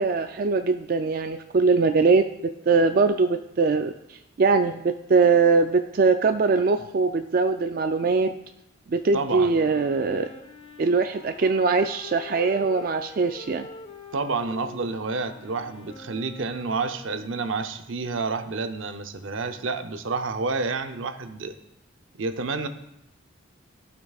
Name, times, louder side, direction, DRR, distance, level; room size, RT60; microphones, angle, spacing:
voice 1, 0.0-8.3 8.9-10.3 10.8-13.7, right 4 dB, 45° right, 7 dB, 0.3 m, -22 dB
voice 2, 9.1-9.5 14.1-21.5 22.2-22.7, right 4 dB, 80° right, 8 dB, 0.7 m, -29 dB
Wind instrument woodwind instrument, 9.3-17.7, left 2 dB, 30° left, 0.9 m, -44 dB
15.5 x 5.9 x 2.4 m, 0.83 s
head